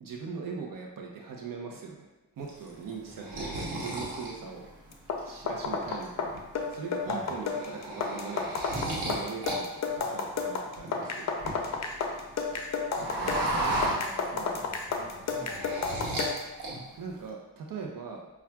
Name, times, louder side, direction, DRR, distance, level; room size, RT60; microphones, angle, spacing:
voice 1, 0.0-2.1 2.4-4.7 5.2-6.3 6.7-8.6 9.0-11.4 13.0-13.7 14.2-14.6 17.0-18.4, right 5 dB, 60° right, 1 dB, 0.7 m, -40 dB
sound 1, 2.5-5.2 5.6-6.4 6.8-7.0 7.3-9.6 9.8-11.9 12.3-14.6 14.9-16.3 16.6-17.2, right 1 dB, 85° right, 1.0 m, -34 dB
voice 2, 3.0-4.1 7.0-7.3 13.5-16.2, right 1 dB, 5° right, -2 dB, 0.7 m, -48 dB
sound 2, 4.9-16.5, left 4 dB, 45° left, 0.5 m, -32 dB
5.6 x 2.3 x 2.3 m, 1.0 s
cardioid pair, 65°, 39 cm